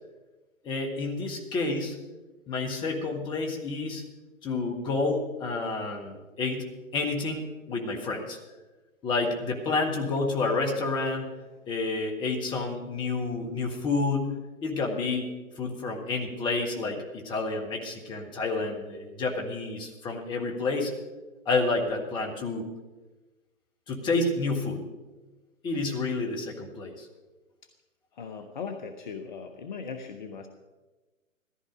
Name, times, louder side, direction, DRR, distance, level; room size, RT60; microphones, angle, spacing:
voice 1, 0.6-2.0 2.5-4.0 4.4-8.4 9.0-11.3 11.7-14.3 14.6-15.3 15.6-20.9 21.4-22.6 23.9-24.8 25.6-27.1, left 3 dB, 10° left, 2 dB, 1.4 m, -29 dB
voice 2, 28.2-30.5, left 5 dB, 35° left, 6 dB, 1.0 m, -38 dB
15.5 x 14.0 x 5.2 m, 1.2 s
figure-of-eight pair, 130°, 40 cm